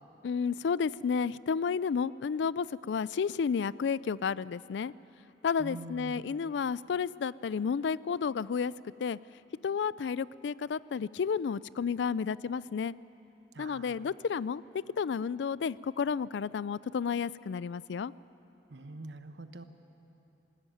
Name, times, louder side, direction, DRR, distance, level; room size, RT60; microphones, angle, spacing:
voice 1, 0.2-4.9 5.4-8.7 9.0-9.2 9.6-12.9 13.6-14.6 15.0-18.1, left 6 dB, 85° left, 20 dB, 0.4 m, -31 dB
voice 2, 5.6-6.2 13.5-14.1 18.7-19.6, right 2 dB, 80° right, 9 dB, 1.1 m, -44 dB
20.5 x 16.0 x 9.1 m, 2.9 s
head